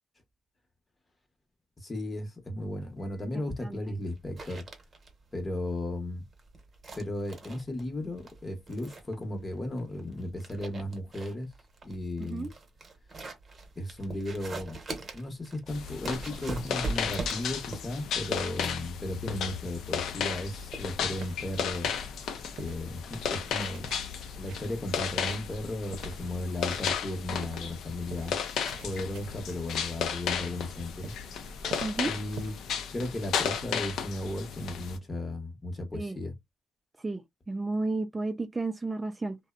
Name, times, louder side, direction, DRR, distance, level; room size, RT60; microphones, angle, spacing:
voice 1, 1.8-4.6 5.3-6.2 6.9-11.5 11.8-12.5 13.8-14.8 15.1-21.9 22.6-24.0 24.3-28.4 28.8-31.1 32.0-32.6 32.9-36.3, left 1 dB, 25° left, 0.8 m, -35 dB
sound 1, 2.6-21.3, right 3 dB, 35° right, 0.9 m, -43 dB
sound 2, 15.7-35.0, left 7 dB, 75° left, 0.5 m, -34 dB
sound 3, 20.6-32.5, right 4 dB, 75° right, 0.6 m, -48 dB
voice 2, 31.8-32.1 35.9-36.2 37.0-39.4, right 3 dB, 20° right, 0.3 m, -32 dB
2.6 x 2.0 x 2.3 m
cardioid pair, 90°, 0 cm